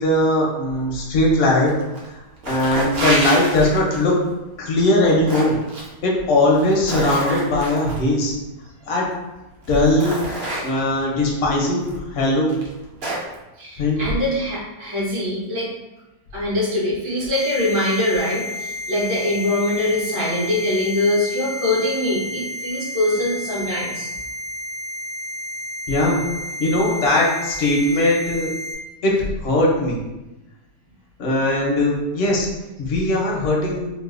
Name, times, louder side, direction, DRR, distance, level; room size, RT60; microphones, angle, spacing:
voice 1, 0.0-1.8 2.1-2.2 2.5-4.2 4.6-5.6 6.0-8.3 8.9-9.1 9.7-10.2 10.6-12.6 13.8-14.0 25.9-26.2 26.6-28.5 29.0-30.0 31.2-32.5 32.8-33.9, left 1 dB, 60° left, -3 dB, 0.7 m, -19 dB
sound 1, 1.7-2.1 2.4-4.1 4.8-5.9 6.5-8.0 9.0-9.1 9.6-11.0 11.8-12.0 12.5-13.3, right 1 dB, 60° right, 0.6 m, -27 dB
voice 2, 13.6-15.7 16.3-24.1, left 1 dB, 75° right, -8 dB, 1.7 m, -23 dB
sound 2, 17.3-28.7, left 2 dB, 75° left, 1.2 m, -31 dB
3.8 x 2.1 x 2.4 m, 1.0 s
omnidirectional pair, 1.8 m